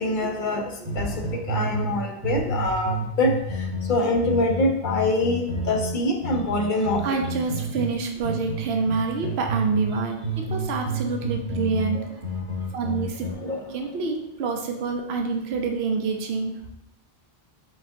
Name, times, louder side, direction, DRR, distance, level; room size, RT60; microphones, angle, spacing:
voice 1, 0.0-7.1 10.9-11.1 11.9-12.1 13.3-14.1, left 2 dB, 60° left, 3 dB, 0.7 m, -25 dB
sound 1, 0.9-2.0 2.2-7.9 8.2-10.0 10.2-13.3, right 1 dB, 40° right, 0.9 m, -30 dB
voice 2, 7.0-12.0 12.7-13.3 13.7-16.5, right 4 dB, 80° right, 3 dB, 0.9 m, -27 dB
5.0 x 3.4 x 2.7 m, 0.78 s
omnidirectional pair, 1.0 m